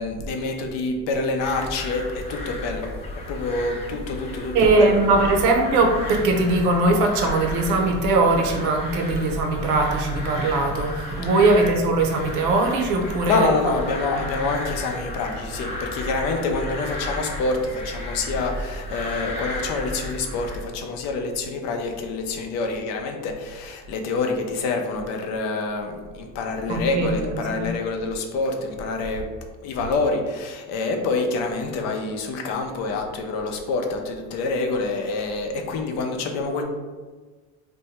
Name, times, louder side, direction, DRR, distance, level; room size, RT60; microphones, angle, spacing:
voice 1, 0.0-5.0 13.2-29.3 29.6-36.6, left 3 dB, 60° left, 4 dB, 0.5 m, -27 dB
sound 1, 1.4-20.6, left 1 dB, 20° left, 0.6 m, -34 dB
voice 2, 4.5-13.5 14.1-14.3 26.7-27.2 27.5-27.7, right 2 dB, 75° right, 3 dB, 0.7 m, -20 dB
2.7 x 2.2 x 4.1 m, 1.4 s
cardioid pair, 165°, 30 cm